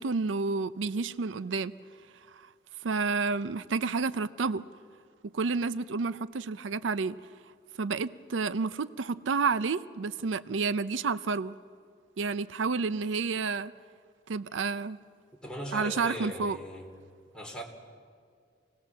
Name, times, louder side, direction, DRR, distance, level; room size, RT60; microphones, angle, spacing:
voice 1, 0.0-1.7 2.3-2.5 2.8-4.6 5.3-7.2 7.8-11.5 12.2-13.7 14.3-15.0 15.7-16.6, right 4 dB, 85° right, 15 dB, 0.5 m, -30 dB
voice 2, 15.4-16.9 17.3-17.6, equal, 5° left, -1 dB, 3.2 m, -38 dB
26.5 x 18.5 x 7.4 m, 2.1 s
head